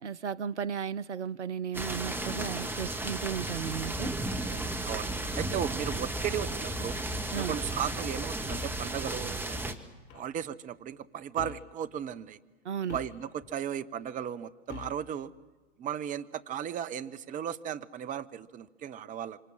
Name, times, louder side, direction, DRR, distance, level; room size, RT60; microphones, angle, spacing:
voice 1, 0.0-4.1 7.3-7.6 12.6-13.0, right 7 dB, 80° right, 0.7 m, -35 dB
Rain Storm, 1.7-9.7, right 1 dB, 5° right, 1.8 m, -34 dB
sound 1, 2.1-9.3, left 4 dB, 15° left, 2.3 m, -53 dB
voice 2, 4.4-7.0 7.3-9.8 10.1-12.4 12.9-15.3 15.8-19.4, right 9 dB, 25° right, 1.0 m, -36 dB
sound 2, 6.2-6.6 8.5-8.9 10.1-10.3 11.4-11.8 12.9-13.5 14.7-15.1, left 12 dB, 35° left, 1.0 m, -46 dB
26.0 x 26.0 x 7.6 m
figure-of-eight pair, 95°, 34 cm